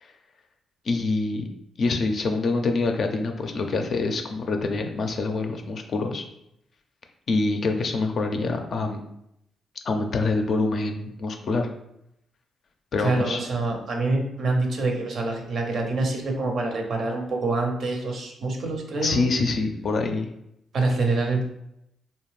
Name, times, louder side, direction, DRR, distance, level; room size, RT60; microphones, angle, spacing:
voice 1, 0.8-1.5 1.8-6.3 7.3-9.0 9.8-11.7 12.9-13.4 19.0-20.3, left 3 dB, 60° left, 4 dB, 0.4 m, -25 dB
voice 2, 13.0-19.3 20.7-21.4, right 3 dB, 65° right, 2 dB, 0.5 m, -26 dB
2.5 x 2.1 x 3.1 m, 0.80 s
supercardioid pair, 50°, 0 cm